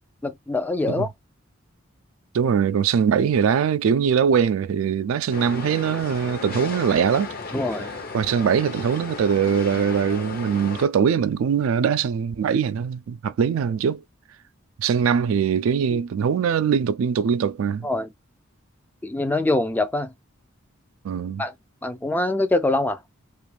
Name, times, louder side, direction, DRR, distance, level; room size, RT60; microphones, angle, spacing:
voice 1, 0.2-1.1 7.5-7.9 15.9-16.0 17.8-18.1 19.0-20.1 21.4-21.5 21.8-23.0, left 2 dB, 10° left, 0.3 m, -24 dB
voice 2, 2.3-7.3 8.1-14.0 14.8-17.9 21.0-21.4, right 7 dB, 70° right, 0.3 m, -22 dB
sound 1, 5.3-10.9, left 4 dB, 45° left, 0.7 m, -35 dB
2.5 x 2.4 x 3.2 m
head